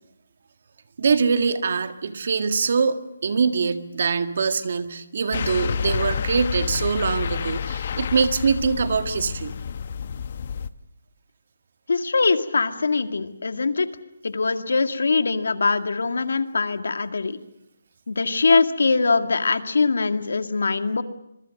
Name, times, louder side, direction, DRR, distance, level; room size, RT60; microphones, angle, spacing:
voice 1, 1.0-9.5, right 5 dB, 50° right, 8 dB, 1.8 m, -23 dB
sound 1, 5.3-10.7, left 7 dB, 40° left, 0.9 m, -29 dB
voice 2, 11.9-13.9 14.2-17.4 18.1-21.0, left 4 dB, 75° left, 8 dB, 2.1 m, -22 dB
26.0 x 23.0 x 6.6 m, 0.83 s
hypercardioid pair, 170°, 0 cm